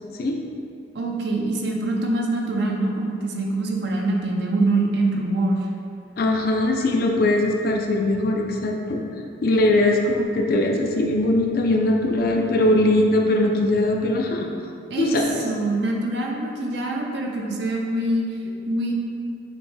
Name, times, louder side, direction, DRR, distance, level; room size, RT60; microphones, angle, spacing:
voice 1, 0.9-5.7 14.9-18.9, right 2 dB, 60° right, 0 dB, 0.5 m, -24 dB
voice 2, 6.2-9.1 9.4-14.5 15.0-15.4, left 1 dB, 50° left, 1 dB, 0.4 m, -21 dB
6.0 x 2.1 x 3.2 m, 2.5 s
head